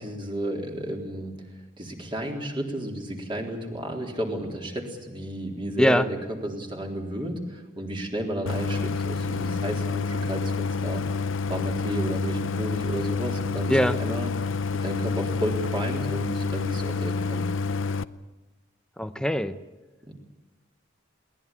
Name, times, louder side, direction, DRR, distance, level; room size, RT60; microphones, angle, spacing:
voice 1, 0.0-6.2 6.4-11.1 11.5-14.3 14.8-17.5 20.0-20.1, right 1 dB, 25° right, 1 dB, 3.8 m, -32 dB
Idling, 8.5-18.0, left 4 dB, 80° left, 0.7 m, -28 dB
voice 2, 19.0-19.6, equal, 5° left, 10 dB, 0.8 m, -22 dB
22.0 x 18.5 x 8.7 m, 1.2 s
head